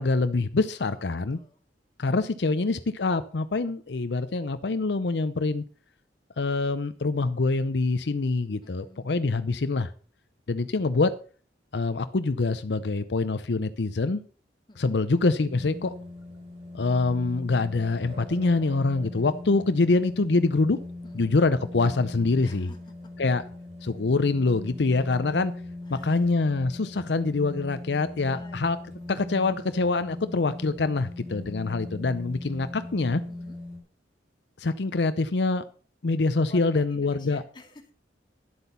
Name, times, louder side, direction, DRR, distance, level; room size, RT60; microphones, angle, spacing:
voice 1, 0.0-1.4 2.0-5.6 6.4-9.9 10.5-11.1 11.7-14.2 14.8-15.9 16.7-20.8 21.1-22.7 23.2-23.4 23.8-25.5 25.9-28.8 29.1-33.2 34.6-35.6 36.0-37.4, left 3 dB, 75° left, 11 dB, 0.6 m, -25 dB
voice 2, 0.6-1.6 8.6-9.4 14.7-15.0 21.0-21.2 22.4-22.8 25.9-26.4 28.2-29.1 33.3-33.6 36.5-37.9, left 1 dB, 25° left, 3 dB, 2.1 m, -50 dB
sound 1, 15.4-33.8, left 2 dB, 45° right, 4.4 m, -40 dB
11.5 x 8.1 x 5.6 m, 0.40 s
head